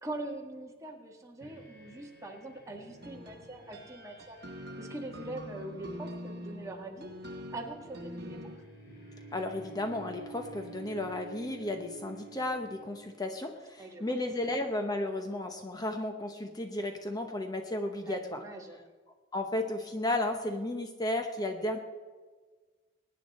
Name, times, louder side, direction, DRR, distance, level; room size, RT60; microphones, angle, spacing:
voice 1, 0.0-4.4 4.8-7.1 7.5-8.4 13.8-14.1 18.1-18.8, right 2 dB, 15° right, 1 dB, 1.8 m, -42 dB
sound 1, 1.4-13.5, right 3 dB, 55° left, 4.0 m, -51 dB
sound 2, 3.0-8.6, equal, 60° right, 1.4 m, -44 dB
voice 2, 9.3-18.4 19.3-21.8, left 1 dB, 20° left, 5 dB, 0.8 m, -34 dB
22.0 x 9.7 x 4.2 m, 1.4 s
head